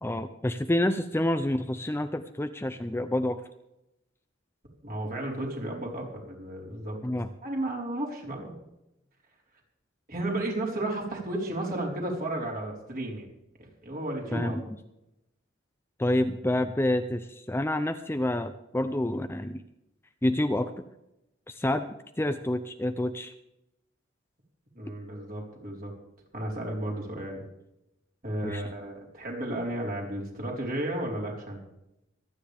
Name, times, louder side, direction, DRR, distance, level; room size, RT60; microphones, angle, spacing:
voice 1, 0.0-3.4 7.0-7.3 14.3-14.6 16.0-19.6 20.2-20.7 21.5-23.3 28.4-28.6, left 1 dB, 10° left, 8 dB, 0.6 m, -28 dB
voice 2, 4.8-7.0 7.4-8.5 10.1-13.3 13.8-14.6 24.7-25.9 26.3-27.4 28.2-31.6, right 1 dB, 45° right, -1 dB, 4.6 m, -33 dB
26.0 x 9.7 x 3.6 m, 0.86 s
head